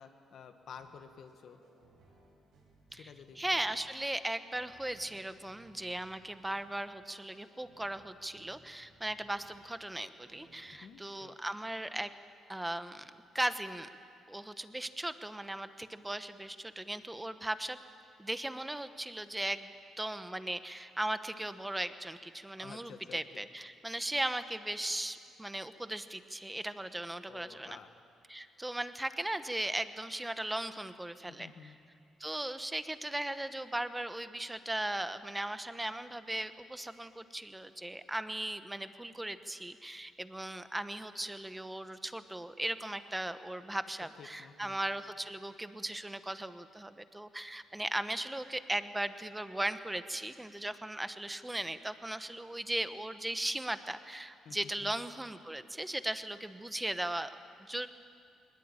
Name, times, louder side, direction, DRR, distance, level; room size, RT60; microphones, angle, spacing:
voice 1, 0.0-1.6 2.9-3.4 10.8-11.4 22.6-23.2 27.3-27.9 31.3-31.8 44.2-44.8 54.5-55.0, left 7 dB, 65° left, 7 dB, 1.8 m, -51 dB
sound 1, 0.6-10.8, right 2 dB, 90° right, 7.9 m, -64 dB
voice 2, 2.9-12.1 12.5-13.9 14.3-17.8 18.2-27.8 28.3-31.8 32.2-57.9, right 1 dB, 10° right, 11 dB, 1.1 m, -37 dB
21.0 x 20.0 x 8.9 m, 2.4 s
cardioid pair, 90°, 0 cm